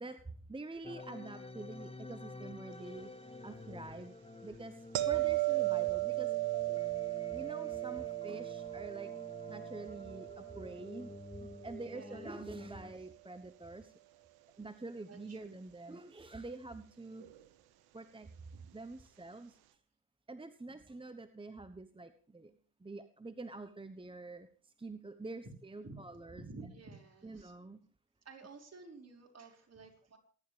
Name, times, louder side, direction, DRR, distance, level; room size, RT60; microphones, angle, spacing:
voice 1, 0.0-3.1 3.4-4.1 4.4-6.4 6.7-6.8 7.3-9.1 9.5-11.1 11.4-13.9 14.6-17.3 17.9-18.3 18.7-19.6 20.3-26.4 27.2-27.8, right 2 dB, 15° right, 11 dB, 1.1 m, -47 dB
sound 1, 0.8-12.9, left 2 dB, 15° left, 1.7 m, -50 dB
sound 2, 5.0-11.9 17.2-17.4, right 20 dB, 75° right, 1.3 m, -36 dB
voice 2, 11.8-12.9 15.1-15.6 25.4-25.5 25.8-27.5 28.2-30.2, right 3 dB, 40° right, 2 dB, 5.4 m, -52 dB
27.0 x 11.5 x 3.4 m, 0.43 s
hypercardioid pair, 50°, 37 cm